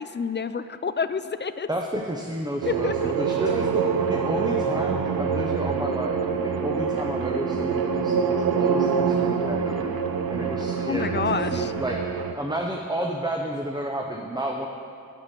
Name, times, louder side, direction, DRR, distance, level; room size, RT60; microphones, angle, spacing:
voice 1, 0.0-1.7 2.7-3.1 10.8-11.7, left 5 dB, 30° left, 12 dB, 0.4 m, -28 dB
voice 2, 1.7-9.9 10.3-12.0 12.4-14.7, right 1 dB, 10° right, 1 dB, 0.7 m, -31 dB
sound 1, 2.6-12.3, right 6 dB, 90° right, 0.7 m, -25 dB
sound 2, 3.1-11.6, right 3 dB, 50° right, 0.9 m, -38 dB
8.4 x 7.4 x 8.3 m, 2.4 s
wide cardioid pair, 90°, 35 cm